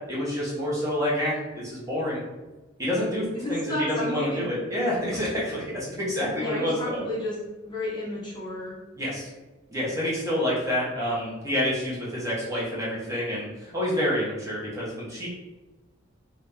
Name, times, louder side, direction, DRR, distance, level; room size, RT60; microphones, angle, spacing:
voice 1, 0.1-2.2 2.8-7.0 9.0-9.3 9.7-15.3, left 1 dB, 15° right, -7 dB, 1.0 m, -28 dB
voice 2, 3.4-4.5 6.4-7.4 7.6-8.8, left 1 dB, 25° left, -6 dB, 0.7 m, -32 dB
2.8 x 2.6 x 3.5 m, 1.1 s
head